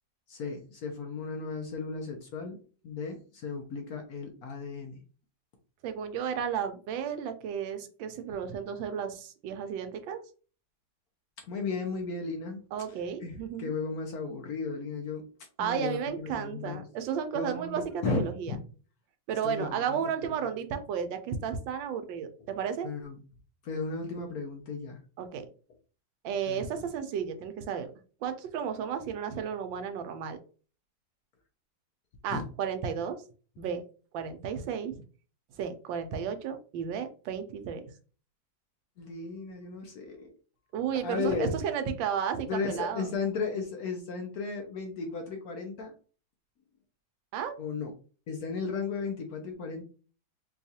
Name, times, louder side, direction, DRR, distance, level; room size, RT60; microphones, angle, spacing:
voice 1, 0.3-4.9 11.5-12.6 13.2-15.3 15.6-16.9 17.3-18.6 19.4-20.0 22.8-23.2 23.6-25.0 26.5-26.7 32.3-32.4 39.0-40.3 41.0-41.5 42.5-45.9 47.6-47.9 48.3-49.8, left 4 dB, 65° left, 3 dB, 1.0 m, -35 dB
voice 2, 5.8-10.2 12.7-13.7 15.6-18.6 19.3-22.9 25.2-25.5 26.2-27.9 28.2-30.4 32.2-33.2 33.6-33.8 34.1-35.0 35.6-37.8 40.7-43.1 47.3-47.5, right 7 dB, 85° right, 8 dB, 1.3 m, -33 dB
4.6 x 2.3 x 2.7 m, 0.39 s
omnidirectional pair, 2.0 m